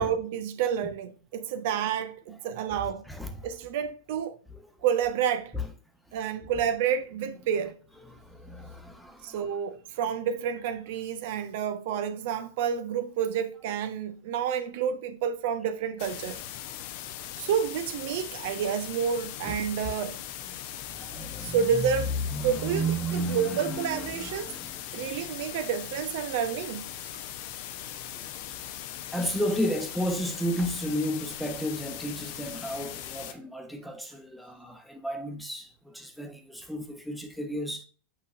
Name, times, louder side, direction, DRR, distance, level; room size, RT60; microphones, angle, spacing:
voice 1, 0.0-3.1 3.4-4.4 4.8-5.5 6.1-7.8 9.2-16.4 17.4-20.2 21.4-22.1 22.4-24.5 24.9-27.2, right 8 dB, 50° right, 0.7 m, -29 dB
voice 2, 3.1-3.5 5.5-5.7 8.1-9.4 19.4-19.6 20.8-21.9 22.3-25.2 28.0-28.6 29.1-37.8, equal, ahead, 1.1 m, -33 dB
sound 1, 16.0-33.3, left 11 dB, 45° left, 0.7 m, -40 dB
8.4 x 5.3 x 2.5 m
figure-of-eight pair, 90°, 0 cm